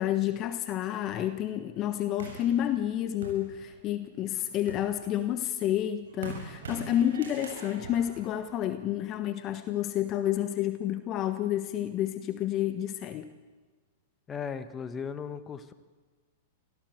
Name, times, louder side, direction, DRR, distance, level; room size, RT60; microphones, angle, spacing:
voice 1, 0.0-13.3, left 11 dB, 35° left, 10 dB, 1.3 m, -30 dB
sound 1, 2.2-4.0 4.5-9.1, right 4 dB, 70° right, 7.3 m, -44 dB
voice 2, 14.3-15.7, left 6 dB, 20° left, 11 dB, 1.6 m, -37 dB
25.0 x 16.5 x 8.0 m, 1.4 s
hypercardioid pair, 100°, 0 cm